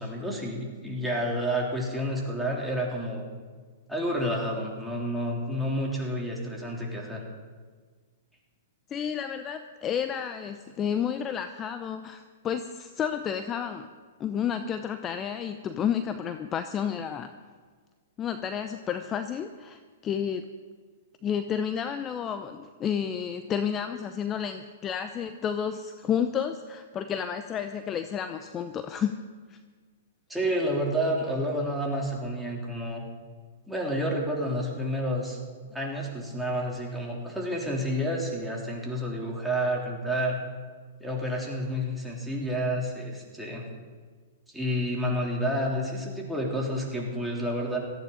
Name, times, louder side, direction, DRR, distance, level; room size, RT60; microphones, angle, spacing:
voice 1, 0.0-3.3 3.9-7.2 30.3-33.0 33.7-35.4 35.7-40.4 41.0-43.7 44.5-47.8, equal, ahead, -3 dB, 3.4 m, -30 dB
voice 2, 8.9-13.9 14.2-17.3 18.2-20.5 21.2-29.1 29.5-29.6, left 8 dB, 25° left, 9 dB, 0.7 m, -31 dB
18.0 x 14.0 x 4.1 m, 1.5 s
hypercardioid pair, 115°, 0 cm